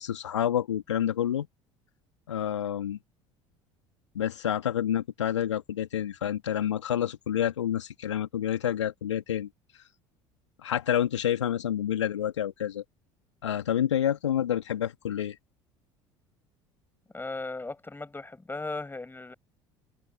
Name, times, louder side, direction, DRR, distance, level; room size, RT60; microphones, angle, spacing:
voice 1, 0.0-1.5 2.3-3.0 4.1-9.5 10.6-12.8 13.4-15.4, left 10 dB, 80° left, 2.8 m, -28 dB
voice 2, 17.1-19.3, left 3 dB, 15° left, 5.6 m, -37 dB
figure-of-eight pair, 65°, 15 cm